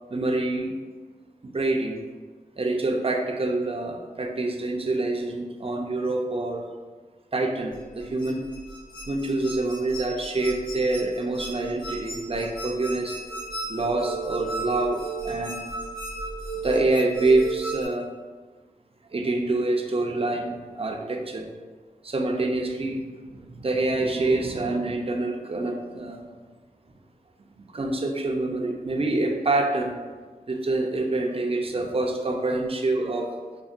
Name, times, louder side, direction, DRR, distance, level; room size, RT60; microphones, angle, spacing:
voice 1, 0.1-0.7 1.4-2.0 2.6-6.6 7.3-8.4 9.1-13.2 13.7-15.6 16.6-18.1 19.1-21.5 22.0-26.3 27.7-29.9 30.5-33.3, right 2 dB, 40° right, 2 dB, 0.5 m, -26 dB
sound 1, 7.7-17.8, right 3 dB, 70° left, 1.2 m, -35 dB
5.3 x 2.1 x 2.4 m, 1.4 s
cardioid pair, 40°, 15 cm